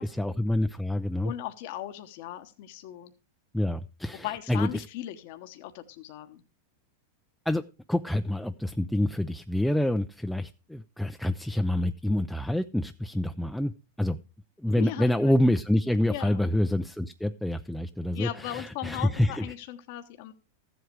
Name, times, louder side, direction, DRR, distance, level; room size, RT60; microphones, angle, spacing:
voice 1, 0.0-1.3 3.5-4.8 7.5-7.6 7.9-13.7 14.0-14.2 14.6-19.5, left 1 dB, ahead, 7 dB, 0.5 m, -27 dB
voice 2, 1.2-3.1 4.2-6.4 14.8-15.3 16.1-16.4 18.1-20.3, left 13 dB, 60° left, 8 dB, 1.1 m, -38 dB
13.5 x 7.9 x 4.7 m, 0.31 s
hypercardioid pair, 115°, 0 cm